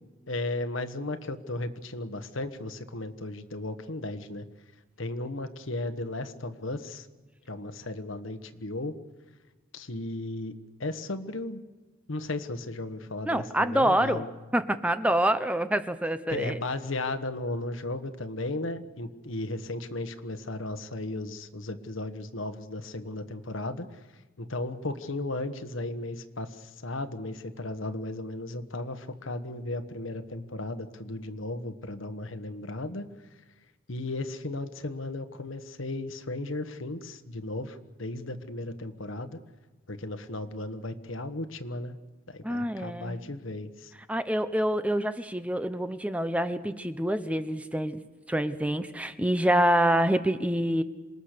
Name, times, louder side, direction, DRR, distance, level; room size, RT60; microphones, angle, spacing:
voice 1, 0.3-4.4 5.0-7.1 7.5-9.0 9.7-10.5 10.8-11.6 12.1-14.3 16.3-23.9 24.4-33.1 33.9-39.4 39.9-41.9 42.3-43.9, left 2 dB, 80° left, 9 dB, 1.4 m, -35 dB
voice 2, 13.3-14.2 14.5-16.6 42.4-43.3 44.1-48.0 48.3-50.8, right 1 dB, 5° right, 11 dB, 0.8 m, -26 dB
27.0 x 20.0 x 6.7 m, 1.2 s
head